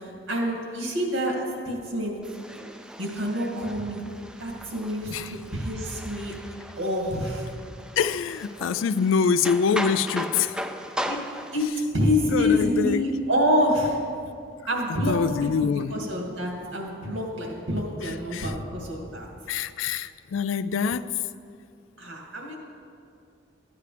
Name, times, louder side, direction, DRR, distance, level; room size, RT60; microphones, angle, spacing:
voice 1, 0.0-1.3 1.6-2.2 3.0-4.0 4.4-6.3 6.8-7.5 11.1-11.2 11.5-11.7 11.9-14.0 14.7-15.1 15.4-19.3 22.0-22.6, left 1 dB, 85° right, -1 dB, 2.3 m, -27 dB
sound 1, 2.2-11.7, equal, 5° right, 0.3 m, -37 dB
voice 2, 8.0-10.6 12.3-13.0 15.1-15.9 18.0-18.5 19.5-21.2, left 6 dB, 90° left, 13 dB, 0.4 m, -25 dB
14.0 x 9.6 x 3.4 m, 2.4 s
head